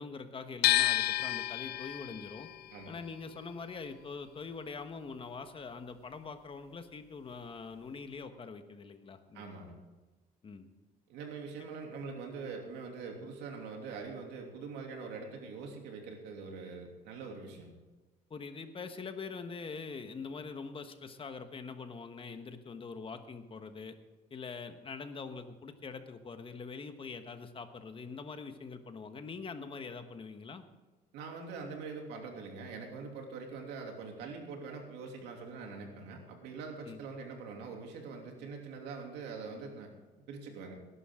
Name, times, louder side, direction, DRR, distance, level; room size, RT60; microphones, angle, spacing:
voice 1, 0.0-2.5 2.9-9.5 10.4-10.7 18.3-23.9 24.3-30.6 36.8-37.0, left 4 dB, 30° left, 8 dB, 1.3 m, -44 dB
sound 1, 0.6-6.7 6.9-8.2, left 14 dB, 70° left, 0.5 m, -33 dB
voice 2, 9.3-9.7 11.1-17.7 31.1-39.9 40.3-40.8, right 4 dB, 90° right, 2 dB, 2.9 m, -43 dB
19.0 x 11.0 x 3.8 m, 1.2 s
cardioid pair, 110°, 17 cm